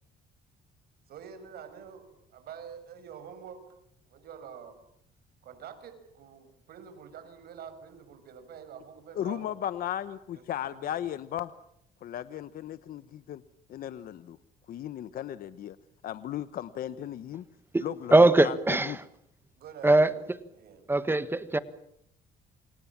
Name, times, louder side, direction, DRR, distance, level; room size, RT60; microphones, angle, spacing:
voice 1, 1.1-3.6 4.0-4.8 5.4-9.6 10.3-10.4 10.7-11.1 19.6-20.9, right 7 dB, 65° right, 6.3 m, -47 dB
voice 2, 9.1-11.5 12.0-13.4 13.7-14.4 14.7-15.8 16.0-17.4 17.8-19.0, left 11 dB, 60° left, 1.1 m, -36 dB
voice 3, 18.1-18.9 19.8-20.1 20.9-21.6, right 2 dB, 15° right, 1.4 m, -21 dB
29.0 x 26.0 x 7.4 m
cardioid pair, 110°, 17 cm